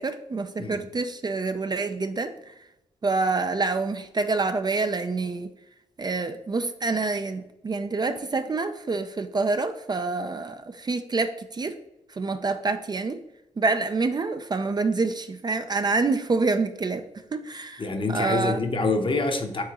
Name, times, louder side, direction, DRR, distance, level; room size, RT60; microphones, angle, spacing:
voice 1, 0.0-2.3 3.0-5.5 6.0-11.8 12.1-13.2 13.6-18.6, right 3 dB, 35° right, 9 dB, 0.4 m, -27 dB
voice 2, 17.8-19.6, left 3 dB, 40° left, 5 dB, 0.8 m, -26 dB
4.8 x 3.6 x 2.9 m, 0.89 s
cardioid pair, 55°, 13 cm